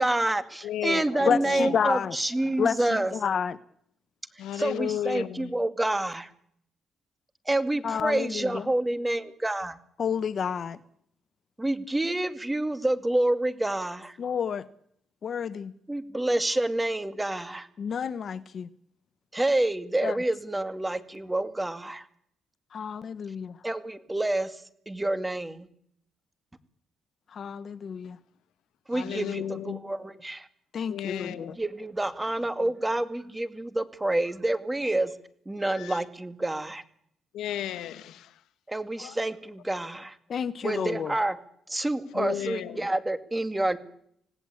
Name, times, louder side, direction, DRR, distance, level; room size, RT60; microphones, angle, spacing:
voice 1, 0.0-3.1 4.6-6.3 7.5-9.8 11.6-14.2 15.9-17.7 19.3-22.0 23.6-24.5 24.9-25.7 28.9-30.5 31.6-35.1 35.5-36.8 38.7-40.2 40.6-41.4 41.7-43.8, right 1 dB, 15° right, 11 dB, 2.2 m, -28 dB
voice 2, 0.6-1.8 4.4-5.5 28.9-29.8 30.9-31.5 32.6-32.7 34.8-34.9 35.7-36.0 37.3-38.4 39.0-39.2 40.6-40.9 42.1-42.9, left 11 dB, 85° left, 14 dB, 1.3 m, -34 dB
voice 3, 1.3-2.2 2.6-3.6 7.8-8.7 10.0-10.8 14.2-14.7 15.2-15.7 17.8-18.7 20.0-20.2 22.7-23.6 27.3-28.2 30.7-31.5 40.3-41.2, left 7 dB, 55° left, 16 dB, 1.0 m, -30 dB
26.5 x 18.5 x 8.6 m, 0.68 s
cardioid pair, 90°, 0 cm